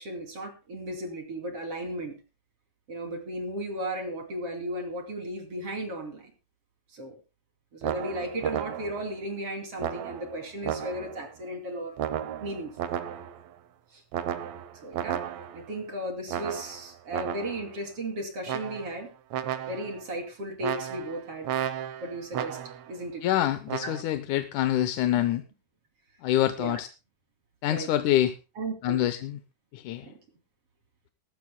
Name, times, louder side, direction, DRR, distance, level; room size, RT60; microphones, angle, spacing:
voice 1, 0.0-2.2 2.9-6.3 6.9-7.2 7.7-12.0 12.4-12.8 13.9-14.0 14.8-19.1 19.7-21.5 22.0-22.6 22.9-23.2 26.6-26.8 27.7-27.9 28.6-29.0 30.0-30.2, right 1 dB, 50° right, 4 dB, 3.6 m, -35 dB
sound 1, 7.8-9.1 9.8-11.3 12.0-13.5 14.1-15.7 16.3-17.7 18.5-19.1 19.3-20.0 20.6-22.9 23.7-24.0, right 10 dB, 70° right, 2.0 m, -34 dB
voice 2, 23.2-25.4 26.2-26.9 27.6-28.3 28.8-29.4 29.7-30.0, left 12 dB, 80° left, 10 dB, 2.2 m, -26 dB
19.0 x 15.5 x 2.2 m, 0.30 s
omnidirectional pair, 3.6 m